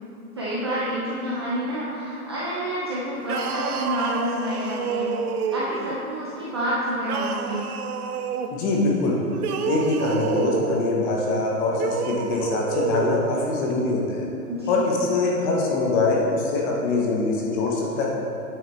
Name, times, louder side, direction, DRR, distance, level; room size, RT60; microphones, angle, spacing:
voice 1, 0.3-5.1 5.5-7.7 14.5-14.8, equal, 20° right, -8 dB, 0.4 m, -28 dB
sound 1, 3.2-6.0 7.0-8.5 9.3-10.8 11.7-13.2, right 6 dB, 70° right, 0.7 m, -28 dB
voice 2, 8.5-9.2 9.7-14.3 14.7-18.1, left 3 dB, 20° left, -2 dB, 0.8 m, -23 dB
8.9 x 6.2 x 3.4 m, 2.9 s
hypercardioid pair, 140°, 46 cm